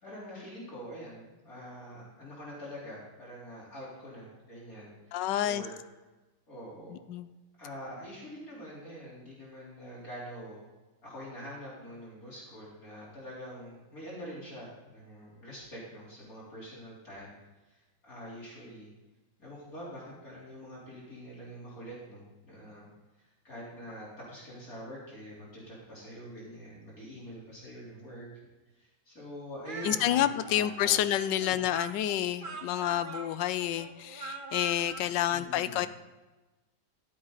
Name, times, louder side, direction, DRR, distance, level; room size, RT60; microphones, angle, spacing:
voice 1, 0.0-5.7 6.5-7.0 7.6-10.6 11.0-17.3 17.7-18.9 19.4-22.9 23.2-28.3 28.8-31.0 31.4-31.5 35.3-35.8, equal, 50° left, -7 dB, 4.3 m, -45 dB
voice 2, 5.1-5.6 7.1-7.3 29.8-35.9, left 12 dB, 80° left, 14 dB, 1.3 m, -29 dB
Speech, 29.6-35.1, right 3 dB, 35° right, 0.9 m, -43 dB
14.0 x 8.1 x 4.0 m, 1.2 s
omnidirectional pair, 1.9 m